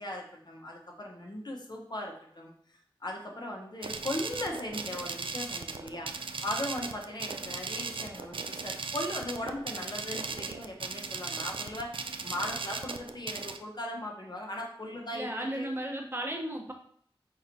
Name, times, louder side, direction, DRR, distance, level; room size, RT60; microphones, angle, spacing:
voice 1, 0.0-2.5 3.0-15.7, left 1 dB, 50° left, 0 dB, 0.9 m, -38 dB
sound 1, 3.8-13.6, right 4 dB, 65° right, 0.3 m, -37 dB
voice 2, 15.1-16.7, right 1 dB, 25° right, 1 dB, 0.8 m, -35 dB
4.4 x 3.9 x 2.6 m, 0.62 s
wide cardioid pair, 65°, 9 cm